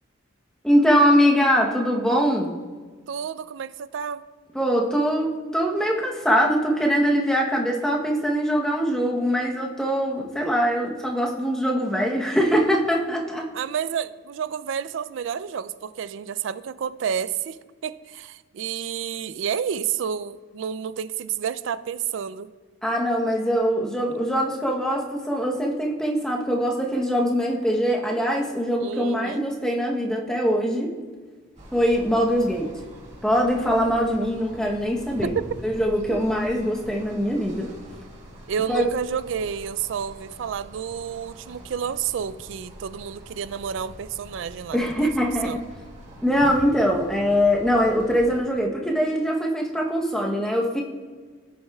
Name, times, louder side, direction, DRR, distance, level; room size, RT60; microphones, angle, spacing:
voice 1, 0.6-2.5 4.5-13.5 22.8-30.9 31.7-32.7 33.2-35.3 35.6-37.7 38.7-38.8 44.7-45.6 46.2-50.8, equal, 5° left, -2 dB, 0.9 m, -22 dB
voice 2, 3.1-4.2 13.5-22.5 24.0-24.2 28.8-29.5 35.2-35.5 36.1-36.2 38.5-45.1 45.4-45.6, right 8 dB, 65° right, 16 dB, 0.3 m, -30 dB
sound 1, 31.6-48.4, equal, 35° right, 1.8 m, -43 dB
14.5 x 6.3 x 2.3 m, 1.5 s
head